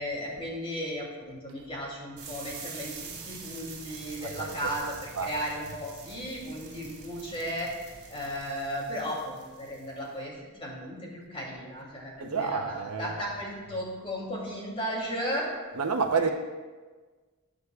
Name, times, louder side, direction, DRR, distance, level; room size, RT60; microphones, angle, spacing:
voice 1, 0.0-7.7 8.1-15.5 16.2-16.3, equal, 25° left, -3 dB, 2.9 m, -35 dB
sound 1, 2.2-10.1, right 5 dB, 50° right, 3.6 m, -45 dB
voice 2, 4.2-5.3 12.2-13.2 15.8-16.3, right 5 dB, 75° right, 6 dB, 0.9 m, -30 dB
19.5 x 8.2 x 2.4 m, 1.4 s
head